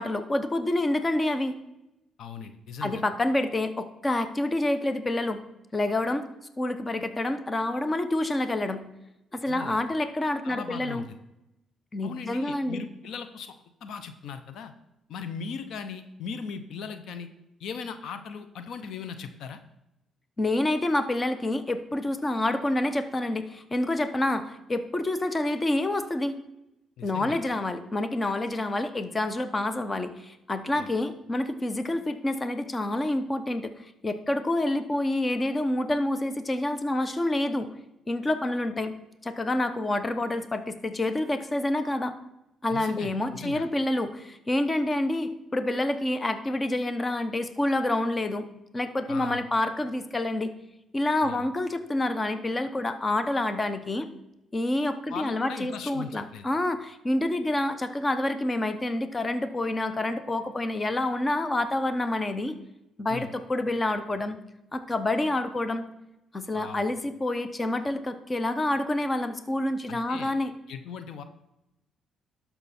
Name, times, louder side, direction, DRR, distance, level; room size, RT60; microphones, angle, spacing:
voice 1, 0.0-1.5 2.8-5.4 5.7-6.2 6.6-8.9 9.3-11.0 11.9-12.8 20.4-26.3 27.0-33.7 34.0-37.7 38.1-38.9 39.2-42.1 42.6-48.5 48.7-50.5 50.9-54.1 54.5-62.5 63.0-64.4 64.7-65.8 66.3-70.5, left 1 dB, 25° left, 10 dB, 0.9 m, -28 dB
voice 2, 2.2-3.0 9.5-9.8 10.4-11.2 12.0-13.6 13.8-14.7 15.1-17.3 17.6-19.6 27.0-27.4 30.8-30.9 42.7-43.6 49.1-49.4 51.2-51.5 55.1-56.5 63.1-63.3 66.5-66.9 69.9-70.3 70.7-71.2, left 6 dB, 75° left, 10 dB, 0.8 m, -38 dB
12.5 x 5.9 x 4.3 m, 0.89 s
cardioid pair, 90°, 0 cm